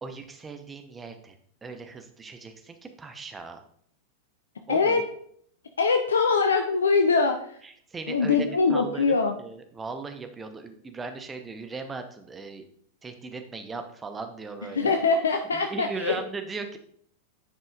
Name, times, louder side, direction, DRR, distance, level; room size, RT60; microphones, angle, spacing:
voice 1, 0.0-3.6 4.7-5.0 7.6-12.6 13.0-15.0 15.5-16.8, right 4 dB, 15° right, 6 dB, 0.9 m, -38 dB
voice 2, 4.7-5.0 5.8-7.6 8.1-9.3 14.7-16.2, left 4 dB, 70° left, 6 dB, 0.5 m, -23 dB
9.9 x 5.4 x 2.5 m, 0.64 s
figure-of-eight pair, 90°, 0 cm